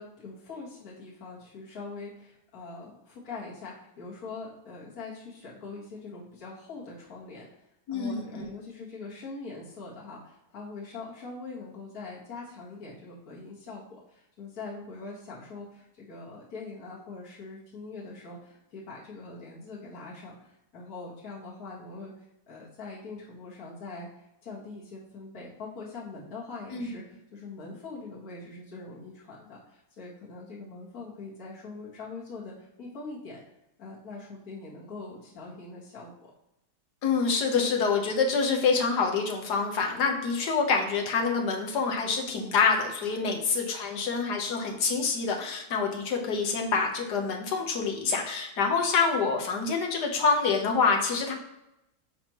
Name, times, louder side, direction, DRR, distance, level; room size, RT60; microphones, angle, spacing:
voice 1, 0.0-33.4 33.8-36.1 43.2-43.4, left 3 dB, 65° left, -6 dB, 2.2 m, -43 dB
voice 2, 7.9-8.5 26.7-26.9 37.0-51.3, left 5 dB, 80° left, 1 dB, 1.6 m, -26 dB
7.1 x 5.3 x 3.0 m, 0.88 s
omnidirectional pair, 1.7 m